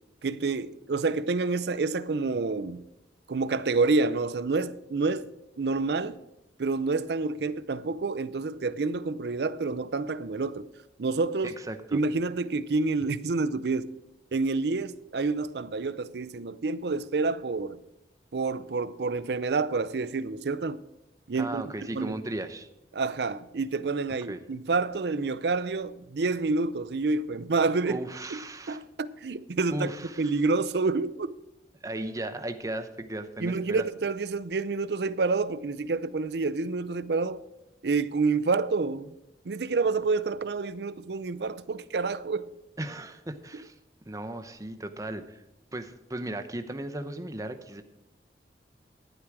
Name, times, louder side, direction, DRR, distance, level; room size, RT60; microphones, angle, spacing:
voice 1, 0.2-2.8 3.3-5.3 5.6-6.2 6.6-10.7 11.0-11.5 11.9-13.9 14.3-17.8 18.3-20.8 21.3-21.6 21.9-22.2 22.9-28.0 28.3-28.4 28.7-29.9 30.2-31.3 33.4-37.4 37.8-39.1 39.4-42.5, right 3 dB, 65° right, 0.5 m, -28 dB
voice 2, 11.4-12.0 21.3-22.7 24.3-24.4 27.9-28.8 29.7-30.3 31.8-33.9 42.8-43.7 44.1-45.4 45.7-47.8, right 1 dB, 20° right, 0.7 m, -36 dB
12.0 x 10.0 x 4.8 m
head